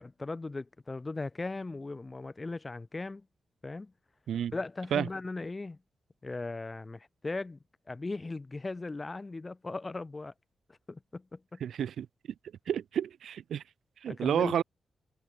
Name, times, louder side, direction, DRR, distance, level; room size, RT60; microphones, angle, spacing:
voice 1, 0.0-3.2 3.6-3.9 4.5-5.8 6.2-7.6 7.9-10.3 10.9-11.6 14.1-14.6, left 3 dB, 20° left, 0.9 m, -38 dB
voice 2, 11.6-12.1 12.7-13.6 14.0-14.6, right 9 dB, 85° right, 1.1 m, -30 dB
wide cardioid pair, 175°, 0 cm